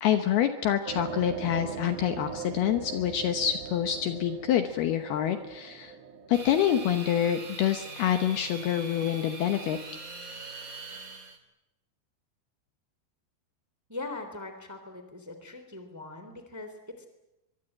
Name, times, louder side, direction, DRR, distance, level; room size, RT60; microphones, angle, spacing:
voice 1, 0.0-5.9 6.3-9.8, left 10 dB, 70° left, 8 dB, 2.6 m, -27 dB
sound 1, 0.8-9.6 10.1-10.2, right 6 dB, 60° right, 3.5 m, -41 dB
sound 2, 6.3-11.4, right 3 dB, 25° right, 2.4 m, -42 dB
voice 2, 13.9-17.1, left 2 dB, 5° right, 7 dB, 2.1 m, -41 dB
23.5 x 23.5 x 8.9 m, 0.96 s
omnidirectional pair, 5.4 m